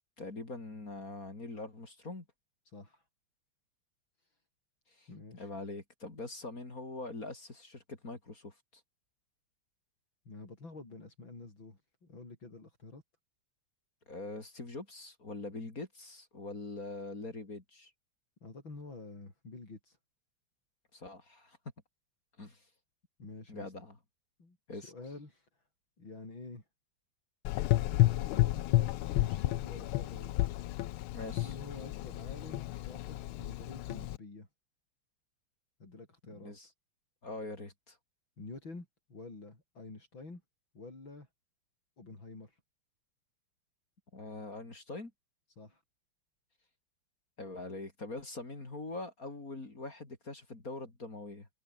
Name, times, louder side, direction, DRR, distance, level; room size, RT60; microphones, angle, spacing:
voice 1, 0.2-2.2 5.0-8.5 14.1-17.9 20.9-21.6 22.4-22.6 23.5-24.0 24.7-24.9 31.1-31.6 36.3-36.7 37.2-38.0 44.1-45.1 47.4-51.5, left 2 dB, 40° left, 4.3 m, -43 dB
voice 2, 2.7-3.0 5.1-5.5 10.2-13.0 18.4-20.0 23.2-23.7 24.4-25.5 26.0-26.6 27.7-30.5 31.4-34.5 35.8-36.5 38.4-40.4 40.7-41.3 42.0-42.6 45.6-45.8, left 3 dB, 65° left, 6.7 m, -49 dB
Gurgling / Engine, 27.4-34.2, left 16 dB, 85° left, 1.5 m, -31 dB
omnidirectional pair, 2.3 m